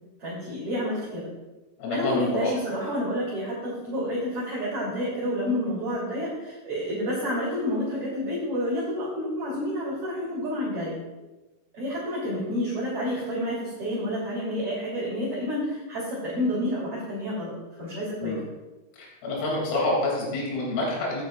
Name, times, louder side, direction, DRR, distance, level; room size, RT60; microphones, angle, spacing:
voice 1, 0.2-1.3 1.9-10.9 11.7-17.5 17.8-18.4, equal, 30° right, -8 dB, 3.7 m, -29 dB
voice 2, 1.8-2.5 18.2-18.4 19.0-21.3, left 2 dB, 85° left, -3 dB, 5.8 m, -27 dB
17.0 x 11.5 x 2.6 m, 1.1 s
omnidirectional pair, 5.9 m